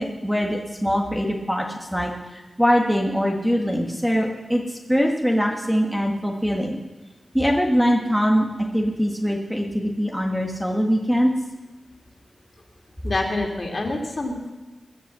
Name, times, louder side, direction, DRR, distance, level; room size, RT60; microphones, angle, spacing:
voice 1, 0.0-6.8 7.3-8.5 8.7-11.3, equal, ahead, 1 dB, 1.6 m, -22 dB
voice 2, 13.0-14.5, left 2 dB, 40° left, 2 dB, 2.9 m, -26 dB
21.5 x 8.3 x 7.6 m, 1.2 s
wide cardioid pair, 110°, 0 cm